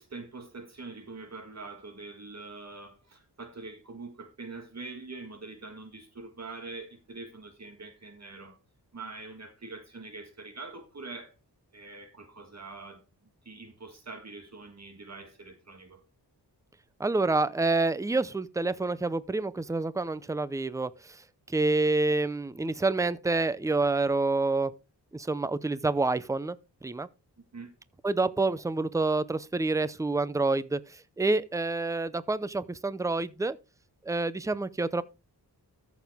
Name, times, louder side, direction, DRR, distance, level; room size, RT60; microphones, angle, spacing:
voice 1, 0.0-8.6 8.9-11.4 11.7-13.0 13.5-16.0 27.5-27.7, right 3 dB, 40° right, 1.7 m, -44 dB
voice 2, 17.0-21.2 21.5-24.7 25.1-26.6 26.8-27.1 28.0-33.6 34.0-35.0, right 3 dB, 10° right, 0.5 m, -28 dB
14.0 x 7.2 x 3.5 m
wide cardioid pair, 140°, 39 cm